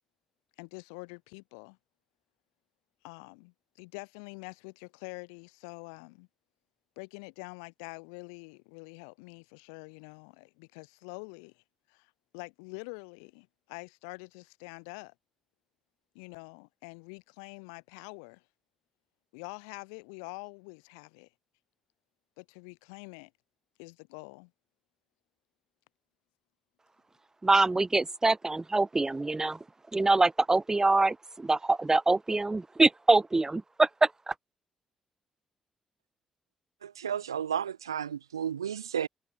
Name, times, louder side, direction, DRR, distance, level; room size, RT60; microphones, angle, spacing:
voice 1, 0.6-1.8 3.0-6.3 7.0-11.6 11.9-15.1 16.1-18.4 19.3-21.3 22.4-23.3 23.8-24.5, left 37 dB, 80° left, 4.7 m, -46 dB
voice 2, 27.4-29.6 29.9-34.3, right 2 dB, 25° right, 3.8 m, -25 dB
voice 3, 36.8-39.1, right 8 dB, 90° right, 1.1 m, -33 dB
hypercardioid pair, 40°, 2 cm